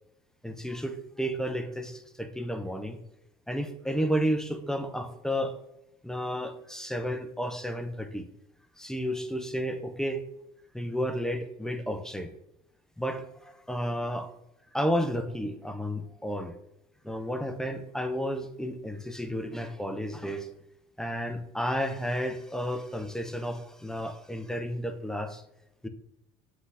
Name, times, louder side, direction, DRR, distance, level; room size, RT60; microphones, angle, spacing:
voice 1, 0.4-3.0 3.5-5.6 6.0-8.2 8.8-10.3 10.7-12.3 13.0-14.3 14.7-16.5 17.0-20.5 21.0-25.4 25.8-25.9, equal, 5° left, 8 dB, 0.3 m, -32 dB
5.2 x 2.5 x 3.3 m, 0.83 s
cardioid pair, 120°, 15 cm